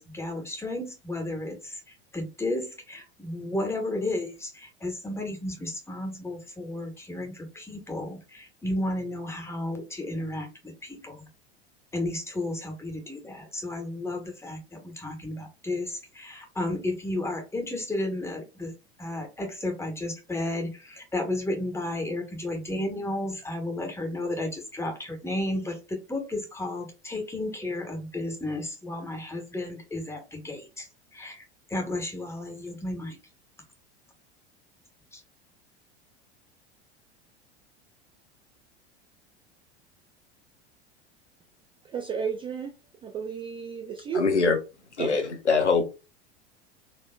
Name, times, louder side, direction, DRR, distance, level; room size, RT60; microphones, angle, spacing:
voice 1, 0.0-11.3 11.9-18.7 19.0-31.4 31.7-33.2 35.1-35.2, left 1 dB, 10° left, 1.3 m, -33 dB
voice 2, 41.8-42.8 43.0-44.2 45.0-45.1, right 6 dB, 15° right, 0.3 m, -32 dB
voice 3, 44.1-44.6 44.9-45.8, left 4 dB, 90° left, 0.8 m, -23 dB
4.4 x 2.9 x 2.2 m
figure-of-eight pair, 80°, 33 cm